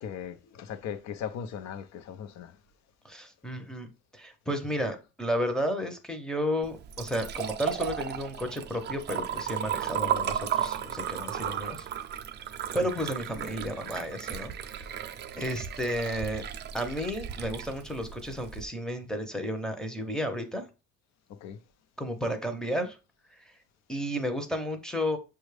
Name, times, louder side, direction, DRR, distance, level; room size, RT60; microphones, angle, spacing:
voice 1, 0.0-2.5 21.4-21.6, left 8 dB, 65° left, 0.7 m, -38 dB
voice 2, 3.0-11.9 12.7-15.0 15.3-16.4 16.7-20.7 22.0-23.0 23.3-23.6 23.9-25.2, equal, ahead, 0.7 m, -32 dB
Liquid, 6.6-18.6, right 9 dB, 35° right, 0.4 m, -35 dB
6.2 x 2.3 x 3.2 m
cardioid pair, 115°, 29 cm